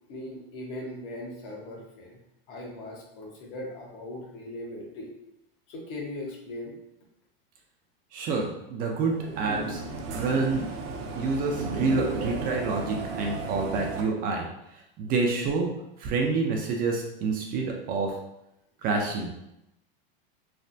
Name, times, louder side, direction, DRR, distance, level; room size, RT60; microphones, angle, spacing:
voice 1, 0.1-2.2 2.5-5.1 5.7-6.8, left 1 dB, 65° left, -2 dB, 1.1 m, -39 dB
voice 2, 8.1-9.8 10.1-10.6 11.2-14.5 15.0-15.7 16.0-18.1 18.8-19.3, right 4 dB, 30° right, 1 dB, 0.4 m, -27 dB
sound 1, 9.0-14.0, right 3 dB, 75° right, 0.6 m, -34 dB
3.2 x 2.1 x 2.6 m, 0.84 s
supercardioid pair, 130°, 29 cm